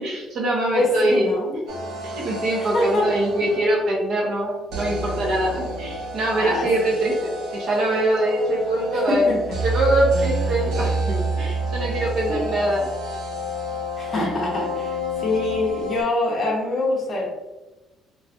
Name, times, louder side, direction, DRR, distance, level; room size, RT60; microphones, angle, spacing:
voice 1, 0.0-1.2 2.0-9.3 9.6-12.9 14.2-14.3, right 1 dB, 45° right, -2 dB, 0.8 m, -23 dB
voice 2, 0.7-1.5 2.6-3.1 5.5-5.6 6.4-6.9 9.1-9.4 12.3-12.4 14.0-17.3, left 2 dB, 25° left, -3 dB, 0.7 m, -24 dB
sound 1, 1.7-4.0 4.7-16.0, right 1 dB, 80° right, 0.7 m, -29 dB
3.1 x 2.4 x 2.6 m, 1.1 s
cardioid pair, 175°, 0 cm